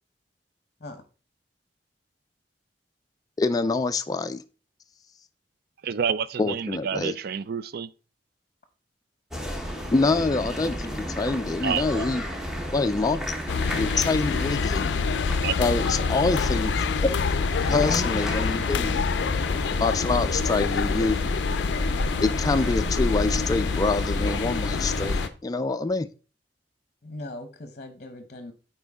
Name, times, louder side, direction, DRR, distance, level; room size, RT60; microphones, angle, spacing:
voice 1, 3.4-4.4 6.4-7.2 9.9-12.2 12.7-13.2 13.5-14.9 15.6-16.7 17.7-18.9 19.8-21.2 22.2-26.1, left 3 dB, 20° left, 0.3 m, -25 dB
voice 2, 5.8-7.9 11.6-12.1 15.4-15.7, right 7 dB, 60° right, 0.4 m, -29 dB
sound 1, 9.3-25.3, equal, 5° right, 1.1 m, -33 dB
sound 2, 13.5-25.3, left 5 dB, 85° left, 0.4 m, -26 dB
voice 3, 17.8-18.2 27.0-28.5, left 2 dB, 45° left, 0.9 m, -37 dB
9.2 x 4.4 x 3.5 m
head